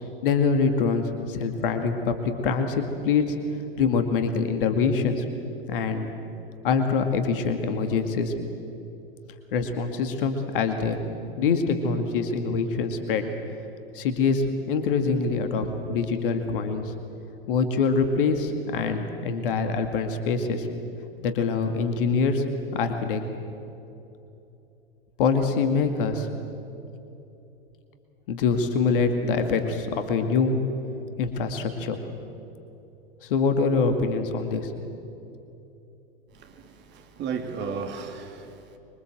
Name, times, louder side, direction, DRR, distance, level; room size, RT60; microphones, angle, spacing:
voice 1, 0.2-3.4 3.8-5.2 5.7-6.1 6.6-8.3 9.5-11.0 11.4-13.3 13.9-16.9 17.5-20.7 21.2-22.4 22.7-23.2 25.2-26.3 28.3-30.6 31.2-32.0 33.2-34.7, left 5 dB, 60° left, 7 dB, 2.2 m, -24 dB
voice 2, 36.3-38.8, right 5 dB, 35° right, 5 dB, 3.0 m, -35 dB
25.5 x 23.5 x 7.8 m, 2.9 s
figure-of-eight pair, 90°, 30 cm